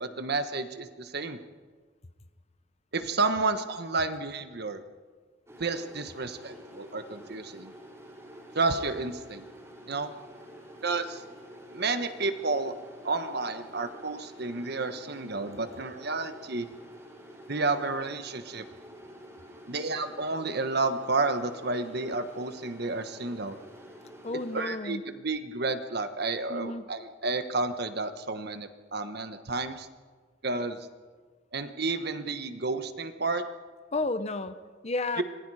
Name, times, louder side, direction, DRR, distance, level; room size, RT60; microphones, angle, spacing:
voice 1, 0.0-1.4 2.9-4.8 5.6-7.7 8.5-9.4 9.9-10.1 10.8-11.2 11.7-12.7 13.0-16.7 17.5-18.6 19.7-23.6 24.5-29.9 30.4-30.8 31.5-33.4 35.2-35.3, right 3 dB, 55° right, 9 dB, 1.3 m, -31 dB
sound 1, 5.5-24.8, equal, 15° right, 4.2 m, -49 dB
voice 2, 24.2-25.0 26.5-26.9 33.9-35.2, left 2 dB, 35° left, 11 dB, 0.9 m, -32 dB
26.5 x 20.5 x 4.9 m, 1.5 s
head